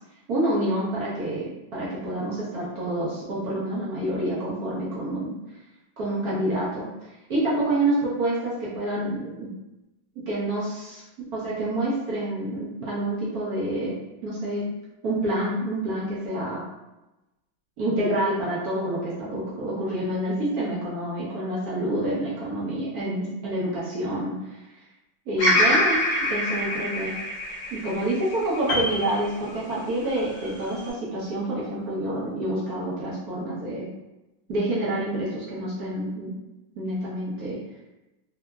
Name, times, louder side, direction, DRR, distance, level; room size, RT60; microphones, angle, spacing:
voice 1, 0.3-5.4 6.0-6.9 7.3-9.5 10.3-14.0 14.2-14.7 15.0-16.6 17.8-24.6 25.3-26.0 26.3-27.2 27.7-33.9 34.5-36.3 36.8-37.6, right 1 dB, 65° right, -8 dB, 1.0 m, -28 dB
Bird vocalization bird call bird song, 25.4-29.6 30.2-30.9, left 1 dB, 60° left, 1.3 m, -25 dB
Piano, 28.7-30.1 30.4-30.6, left 1 dB, 80° left, 0.7 m, -30 dB
3.5 x 2.0 x 2.2 m, 1.0 s
omnidirectional pair, 2.2 m